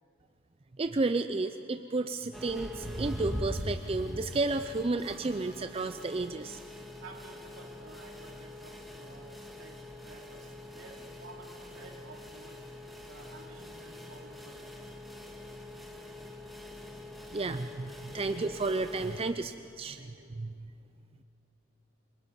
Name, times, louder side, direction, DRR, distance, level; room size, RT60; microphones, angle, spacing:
voice 1, 0.8-6.6 17.3-20.0 20.4-20.5, right 3 dB, 30° right, 9 dB, 0.4 m, -32 dB
sound 1, 2.3-19.3, left 1 dB, ahead, 1.7 m, -43 dB
voice 2, 7.0-12.7 13.0-14.7 18.1-18.7 19.0-19.2 20.0-20.4, right 3 dB, 75° right, 1 dB, 3.0 m, -52 dB
27.0 x 22.0 x 5.4 m, 2.4 s
head